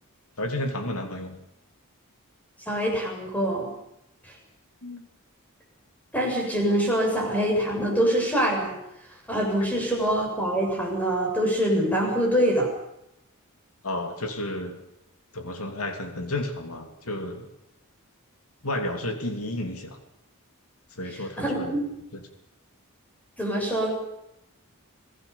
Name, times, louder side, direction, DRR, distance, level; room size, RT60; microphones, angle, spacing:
voice 1, 0.4-1.4 4.8-5.1 13.8-14.7 15.3-17.5 18.6-20.0 20.9-21.8 22.1-22.2, left 1 dB, 75° left, 6 dB, 3.0 m, -32 dB
voice 2, 2.7-3.7 4.2-4.3 6.1-8.8 9.3-12.7 21.4-21.8 23.4-23.9, right 1 dB, 5° left, 0 dB, 7.4 m, -24 dB
27.0 x 17.5 x 7.2 m, 0.84 s
head